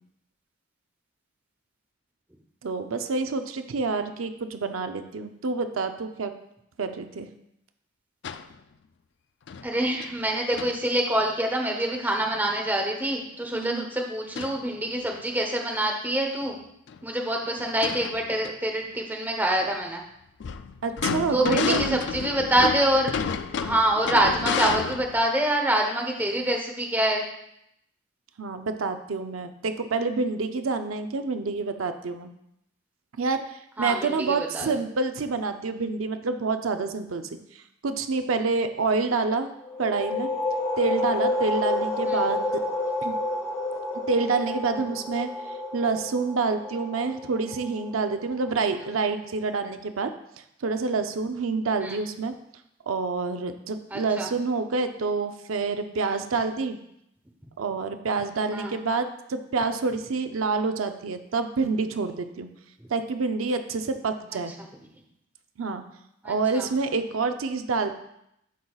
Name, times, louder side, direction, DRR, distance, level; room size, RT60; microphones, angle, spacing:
voice 1, 2.6-6.3 6.8-7.3 13.5-13.9 20.8-22.0 28.4-32.3 33.2-37.3 37.8-39.5 39.8-40.3 40.8-42.6 43.0-43.2 44.1-45.3 45.7-50.1 50.6-52.3 52.9-56.8 57.6-62.5 62.9-64.5 65.6-65.8 66.2-68.0, right 4 dB, 90° right, 8 dB, 0.6 m, -27 dB
sound 1, 8.2-8.5 9.5-9.7 10.0-10.1 10.5-10.8 14.4-14.6 15.1-15.2 16.4-16.5 16.9-17.0 17.6-18.5 20.4-25.2, left 6 dB, 60° left, 0.4 m, -30 dB
voice 2, 9.6-16.6 17.0-20.0 21.3-23.1 23.6-27.2 33.8-34.7 42.1-42.2 51.8-52.0 53.9-54.3 58.5-58.8 66.2-66.7, right 1 dB, 10° right, 1 dB, 0.9 m, -26 dB
sound 2, 39.6-49.0, left 2 dB, 15° left, 1.1 m, -30 dB
12.0 x 5.5 x 2.4 m, 0.78 s
head